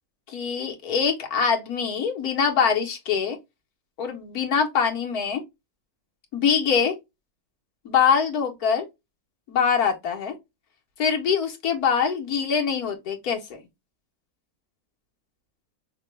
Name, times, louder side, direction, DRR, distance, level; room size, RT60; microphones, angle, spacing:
voice 1, 0.3-3.4 4.0-5.4 6.3-6.9 7.8-8.8 9.5-10.4 11.0-13.6, left 6 dB, 85° left, 1.6 m, -23 dB
5.6 x 2.3 x 3.2 m
omnidirectional pair, 1.6 m